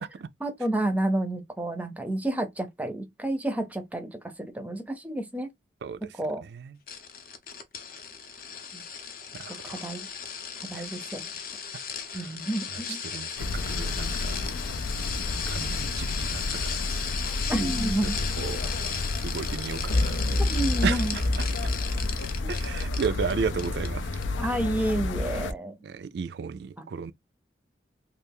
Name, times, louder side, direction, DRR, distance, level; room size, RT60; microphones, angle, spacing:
voice 1, 0.4-5.5 6.2-6.4 8.7-8.8 9.6-10.1 10.7-11.2 12.1-13.0 17.5-18.2 20.5-21.1 24.4-25.8, right 1 dB, 10° right, 0.5 m, -30 dB
voice 2, 5.8-6.8 9.3-9.9 10.7-10.9 12.1-12.3 12.7-14.4 15.5-17.0 18.0-18.8 19.2-20.3 20.8-21.7 22.5-24.5 25.8-27.1, right 6 dB, 60° right, 0.3 m, -34 dB
sound 1, 6.9-23.3 23.6-23.9 24.2-24.3, left 7 dB, 50° left, 0.6 m, -36 dB
sound 2, 13.4-25.5, left 2 dB, 85° left, 0.5 m, -32 dB
sound 3, 19.9-24.2, left 2 dB, 70° left, 0.9 m, -29 dB
3.3 x 2.4 x 3.5 m
head